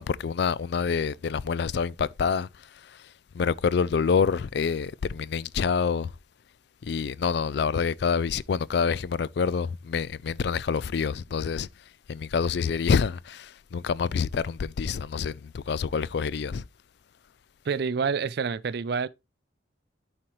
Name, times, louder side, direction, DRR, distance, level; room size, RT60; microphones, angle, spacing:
voice 1, 0.0-2.5 3.3-6.1 6.8-11.7 12.1-16.6, left 6 dB, 60° left, 0.4 m, -27 dB
voice 2, 17.6-19.1, right 5 dB, 60° right, 0.4 m, -27 dB
11.5 x 4.5 x 3.0 m
head